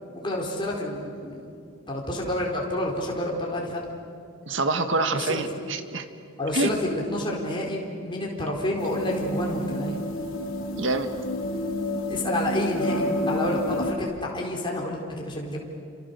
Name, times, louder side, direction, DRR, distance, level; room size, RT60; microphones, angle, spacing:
voice 1, 0.1-1.5 1.9-3.9 5.1-5.4 6.4-10.0 12.1-15.6, left 1 dB, 25° left, -2 dB, 4.2 m, -29 dB
voice 2, 4.5-6.1 6.5-6.7 10.7-11.1, right 2 dB, 60° right, 8 dB, 1.8 m, -26 dB
sound 1, 8.8-13.9, left 1 dB, 75° left, 3.9 m, -30 dB
29.5 x 27.0 x 6.9 m, 2.4 s
head